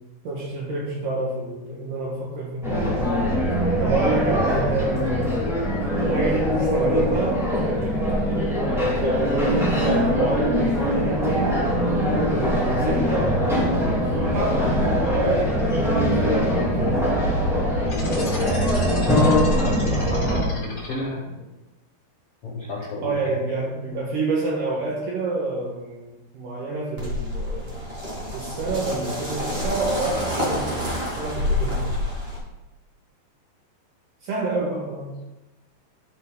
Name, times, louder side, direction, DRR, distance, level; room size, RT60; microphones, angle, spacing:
voice 1, 0.2-2.9 3.8-5.3 6.0-7.5 9.0-11.7 12.4-17.0 23.0-27.8 28.3-32.0 34.2-35.1, right 2 dB, 60° right, -3 dB, 2.6 m, -28 dB
sound 1, 2.6-20.4, equal, ahead, 1.0 m, -22 dB
sound 2, 17.9-21.4, left 2 dB, 40° left, 1.1 m, -36 dB
voice 2, 19.5-21.2 22.4-23.2, left 2 dB, 85° left, -5 dB, 1.3 m, -31 dB
sound 3, 27.0-32.4, left 1 dB, 30° right, 1.0 m, -28 dB
12.0 x 6.7 x 4.0 m, 1.0 s
omnidirectional pair, 5.1 m